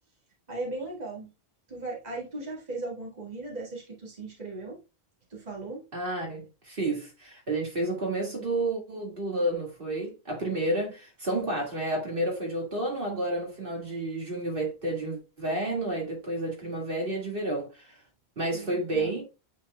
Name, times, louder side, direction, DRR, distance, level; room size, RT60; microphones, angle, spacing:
voice 1, 0.5-1.3 1.7-4.8 5.3-5.8 18.5-19.1, right 2 dB, 40° right, 2.0 m, -37 dB
voice 2, 5.9-18.0 18.4-19.2, right 1 dB, 60° right, 2.3 m, -30 dB
9.2 x 4.5 x 2.3 m
omnidirectional pair, 1.1 m